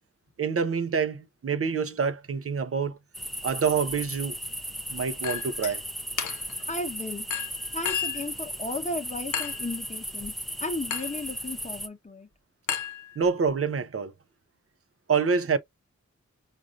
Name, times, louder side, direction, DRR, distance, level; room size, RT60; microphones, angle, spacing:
voice 1, 0.4-3.0 3.4-4.4 4.9-5.8 13.2-14.1 15.1-15.6, right 5 dB, 50° right, 0.7 m, -26 dB
sound 1, 3.1-11.9, equal, ahead, 0.7 m, -36 dB
Chink clink, 5.2-5.8 6.2-6.6 7.3-8.3 9.3-9.7 10.9-11.2 12.7-13.5, left 8 dB, 85° left, 0.7 m, -33 dB
voice 2, 6.7-7.3 7.7-10.3 10.6-12.3, left 2 dB, 25° left, 0.9 m, -34 dB
4.8 x 2.5 x 2.5 m
cardioid pair, 45°, 30 cm